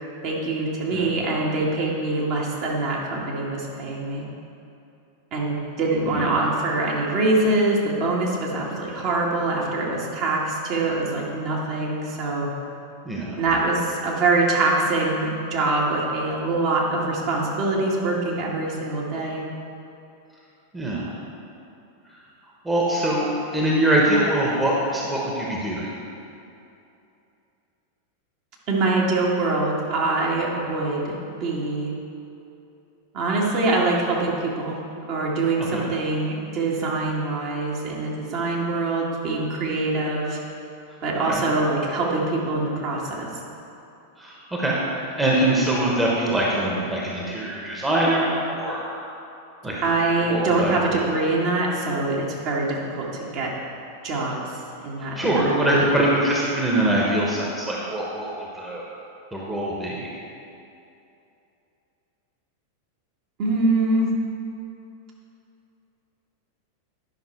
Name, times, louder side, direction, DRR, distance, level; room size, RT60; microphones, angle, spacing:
voice 1, 0.2-4.2 5.3-12.5 13.4-19.4 28.7-31.1 31.4-31.9 33.1-34.8 35.1-40.4 41.0-43.3 49.8-53.5 54.0-55.8 63.4-64.1, right 2 dB, 40° right, -3 dB, 1.8 m, -24 dB
voice 2, 20.7-21.1 22.6-23.3 23.5-25.9 35.7-35.8 41.3-41.4 44.2-49.0 49.6-49.7 50.2-51.1 55.0-58.8 59.3-60.1, right 1 dB, 10° right, -4 dB, 1.3 m, -23 dB
10.5 x 6.0 x 4.5 m, 2.7 s
figure-of-eight pair, 90°, 0 cm